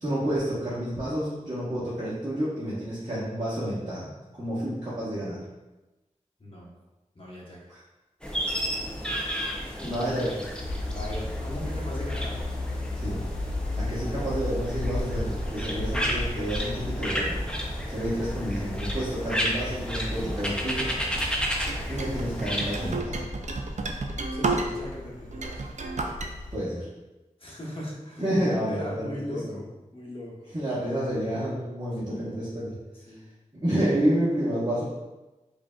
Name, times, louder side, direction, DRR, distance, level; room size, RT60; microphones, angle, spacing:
voice 1, 0.0-4.1 4.4-5.4 7.7-7.8 9.8-10.3 13.0-13.2 13.7-17.4 17.9-20.9 21.9-23.2 26.5-26.9 28.2-29.4 30.5-32.7 33.6-34.8, equal, 30° right, -12 dB, 1.3 m, -29 dB
voice 2, 6.4-6.7 7.1-7.7 9.6-10.1 10.7-12.4 24.3-25.6 27.4-28.4 28.7-30.5 32.9-33.3, left 1 dB, 45° left, -4 dB, 1.1 m, -39 dB
sound 1, 8.2-23.0, equal, 5° left, 0.6 m, -32 dB
sound 2, 10.6-26.5, left 2 dB, 80° left, 0.4 m, -35 dB
sound 3, 21.6-25.0 25.3-26.3, right 3 dB, 65° right, 0.4 m, -31 dB
5.0 x 2.7 x 2.3 m, 1.1 s
wide cardioid pair, 65°, 13 cm